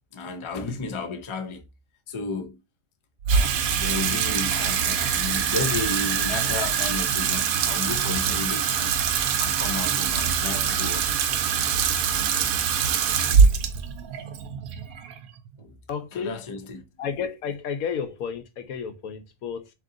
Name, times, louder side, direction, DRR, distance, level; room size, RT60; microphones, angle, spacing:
voice 1, 0.1-1.6 2.1-2.6 3.3-8.9 9.4-11.1 15.6-15.8 16.1-16.8, left 4 dB, 30° left, 0.5 m, -33 dB
Water tap faucet / Sink (filling or washing), 3.2-15.6, right 7 dB, 80° right, 1.1 m, -24 dB
voice 2, 15.9-16.4 17.0-19.7, left 7 dB, 90° left, 1.2 m, -32 dB
3.7 x 3.0 x 3.8 m
omnidirectional pair, 1.5 m